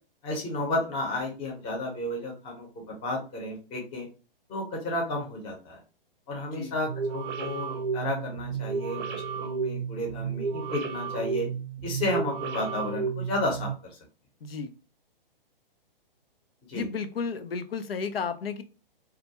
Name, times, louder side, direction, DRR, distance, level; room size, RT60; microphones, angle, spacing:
voice 1, 0.2-4.1 4.5-5.8 6.3-11.5 11.8-13.7 16.7-16.8, left 1 dB, 20° left, 0 dB, 0.7 m, -32 dB
sound 1, 6.9-13.8, right 5 dB, 50° right, 0.5 m, -32 dB
voice 2, 14.4-14.7 16.7-18.6, left 5 dB, 85° left, 10 dB, 0.5 m, -33 dB
2.3 x 2.1 x 2.8 m, 0.34 s
hypercardioid pair, 130°, 29 cm